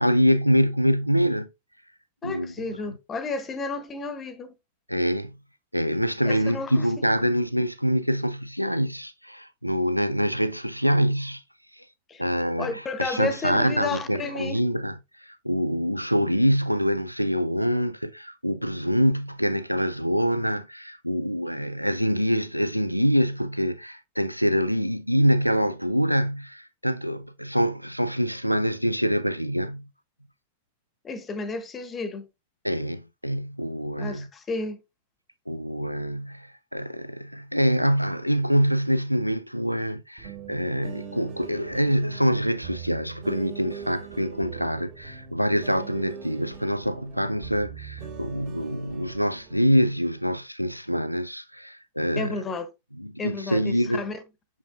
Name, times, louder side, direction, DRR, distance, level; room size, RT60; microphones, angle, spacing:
voice 1, 0.0-1.5 2.2-2.5 4.9-5.3 5.7-11.4 11.7-11.9 12.2-29.8 32.6-34.3 35.5-52.4 53.0-54.0, equal, 90° right, 0.3 m, -25 dB
voice 2, 2.2-4.5 6.3-6.9 12.1-12.2 12.6-14.6 31.0-32.3 34.0-34.8 52.2-52.7 53.2-54.2, left 3 dB, 20° left, 0.9 m, -32 dB
sound 1, 40.2-49.7, right 7 dB, 50° right, 2.0 m, -41 dB
6.5 x 5.7 x 2.5 m
figure-of-eight pair, 90°, 0 cm